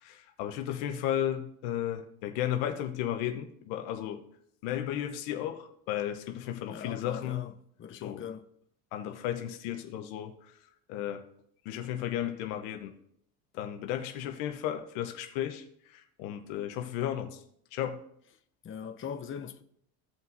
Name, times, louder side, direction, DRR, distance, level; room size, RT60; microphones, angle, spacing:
voice 1, 0.0-4.2 4.6-7.5 8.0-8.2 8.9-10.3 10.9-11.2 11.6-12.9 13.5-15.6 15.9-17.4 17.7-18.0, left 11 dB, 80° left, 1.1 m, -34 dB
voice 2, 6.7-7.5 7.8-8.4 18.6-19.6, left 7 dB, 30° left, 0.8 m, -40 dB
16.5 x 5.5 x 2.7 m
supercardioid pair, 80°, 42 cm